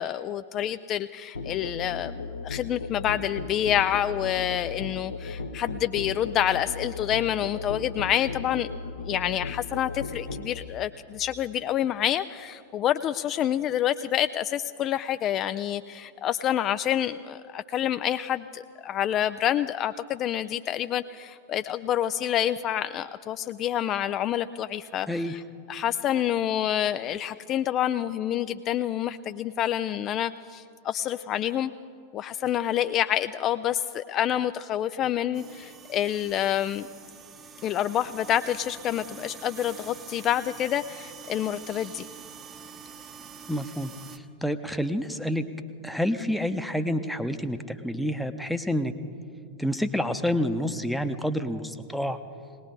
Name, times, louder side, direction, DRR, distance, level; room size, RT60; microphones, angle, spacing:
voice 1, 0.0-8.7 9.1-25.4 25.7-31.7 32.1-36.9 37.6-42.1, left 11 dB, 35° left, 11 dB, 0.3 m, -28 dB
Musical instrument, 1.3-10.6, left 3 dB, 75° left, 0.8 m, -36 dB
sound 1, 35.3-44.2, right 6 dB, 25° right, 0.9 m, -46 dB
voice 2, 43.5-43.9 44.4-45.4 45.8-48.9 49.6-52.2, equal, ahead, 9 dB, 0.8 m, -28 dB
19.5 x 19.5 x 3.8 m, 2.4 s
figure-of-eight pair, 90°, 0 cm